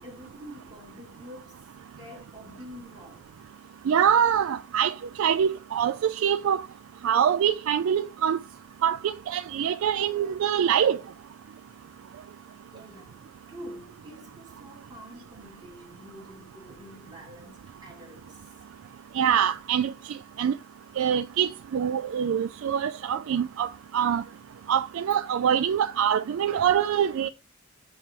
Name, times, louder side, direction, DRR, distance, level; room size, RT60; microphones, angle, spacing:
voice 1, 0.0-1.6 2.0-3.4 12.3-12.4 12.7-13.2 13.5-18.5, equal, 20° right, 3.0 m, -47 dB
voice 2, 3.9-6.6 7.0-8.4 8.8-11.0 19.1-20.5 21.0-24.2 24.7-27.3, right 8 dB, 70° right, 0.3 m, -24 dB
7.6 x 5.5 x 3.0 m
head